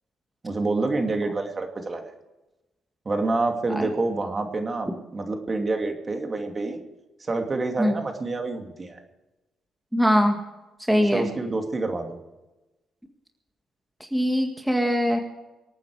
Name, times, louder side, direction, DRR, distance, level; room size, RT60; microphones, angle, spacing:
voice 1, 0.4-2.0 3.0-6.8 7.2-9.0 10.9-12.2, right 3 dB, 30° right, 4 dB, 2.6 m, -27 dB
voice 2, 9.9-10.4 10.9-11.3 14.1-15.2, equal, 5° right, 3 dB, 1.9 m, -21 dB
25.5 x 9.2 x 4.9 m, 1.0 s
cardioid pair, 90°, 0 cm